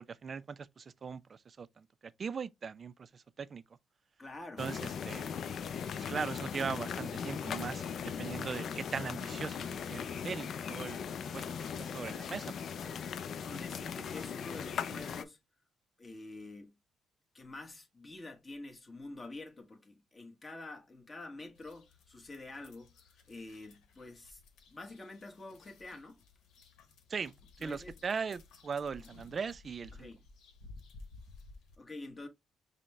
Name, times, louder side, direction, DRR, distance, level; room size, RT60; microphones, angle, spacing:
voice 1, 0.1-3.6 4.6-5.2 5.9-7.8 8.2-11.0 11.3-11.4 11.8-12.5 27.1-30.1, right 5 dB, 40° right, 0.3 m, -39 dB
voice 2, 4.2-4.6 10.6-11.2 13.4-15.4 16.0-16.8 17.3-24.4 24.7-26.2 27.6-28.0 29.9-30.2 31.8-32.3, left 2 dB, 30° left, 1.1 m, -47 dB
sound 1, 4.6-15.2, left 7 dB, 60° left, 0.4 m, -39 dB
sound 2, 21.5-31.8, left 3 dB, 80° left, 0.9 m, -56 dB
5.2 x 2.1 x 3.3 m
cardioid pair, 90°, 0 cm